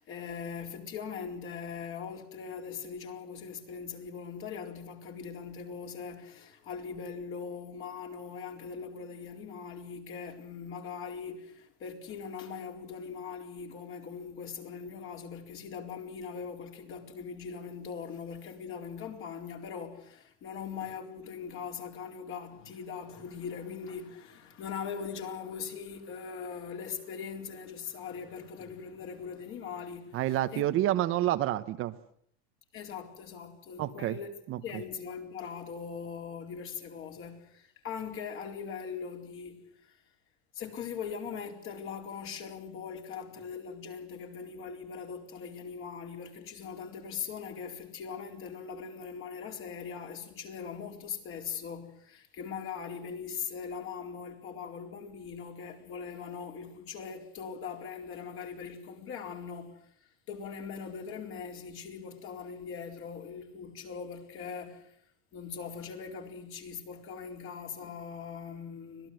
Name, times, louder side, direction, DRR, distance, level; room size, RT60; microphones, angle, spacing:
voice 1, 0.0-30.2 30.5-30.6 32.7-34.3 34.6-40.0 40.5-59.9 60.3-65.0 65.3-69.1, left 6 dB, 40° left, 4.4 m, -41 dB
voice 2, 30.1-31.9 33.8-34.2 34.5-34.6, right 14 dB, 40° right, 1.1 m, -28 dB
25.5 x 18.5 x 7.9 m
supercardioid pair, 150°, 32 cm